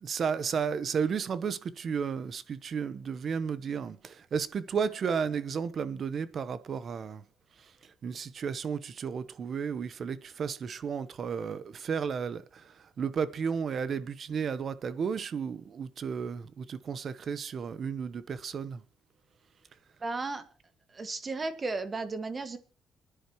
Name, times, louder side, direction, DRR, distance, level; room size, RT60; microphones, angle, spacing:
voice 1, 0.0-7.2 8.0-18.8, right 6 dB, 55° right, 1.0 m, -33 dB
voice 2, 20.0-20.4 20.9-22.6, right 3 dB, 35° right, 1.8 m, -34 dB
28.5 x 10.0 x 3.1 m
cardioid pair, 90°, 0 cm